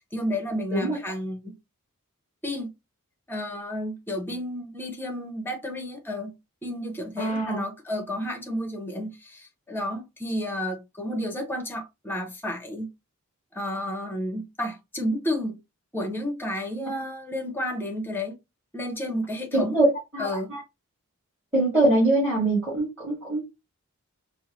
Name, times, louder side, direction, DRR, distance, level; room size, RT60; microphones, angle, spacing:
voice 1, 0.1-1.6 2.4-2.7 3.3-6.3 6.6-12.9 13.5-15.6 15.9-18.4 18.7-19.8 20.2-20.5, left 1 dB, 10° left, 0.7 m, -31 dB
voice 2, 7.2-7.6 19.5-19.9 20.1-20.6 21.5-23.4, right 2 dB, 10° right, 1.9 m, -23 dB
4.4 x 2.0 x 2.9 m
head